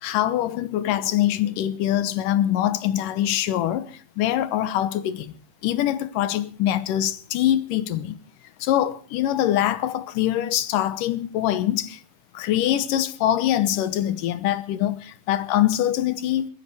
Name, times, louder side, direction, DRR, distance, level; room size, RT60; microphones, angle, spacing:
voice 1, 0.0-5.3 5.6-8.2 8.6-12.0 12.3-16.5, left 12 dB, 85° left, 2.6 m, -23 dB
21.5 x 13.0 x 4.7 m
omnidirectional pair, 3.8 m